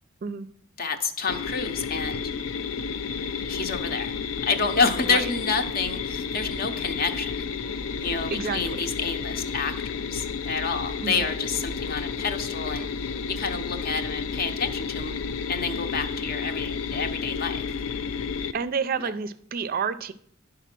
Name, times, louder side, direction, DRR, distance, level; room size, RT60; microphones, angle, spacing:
voice 1, 0.8-2.3 3.5-4.1 4.4-7.5 8.0-15.2 15.5-17.7 19.0-19.1, left 5 dB, 50° left, 0.7 m, -29 dB
sound 1, 1.3-18.5, left 5 dB, 90° left, 0.5 m, -31 dB
voice 2, 8.3-8.6 11.0-11.3 18.5-20.1, right 6 dB, 45° right, 0.4 m, -29 dB
10.0 x 3.8 x 6.0 m
head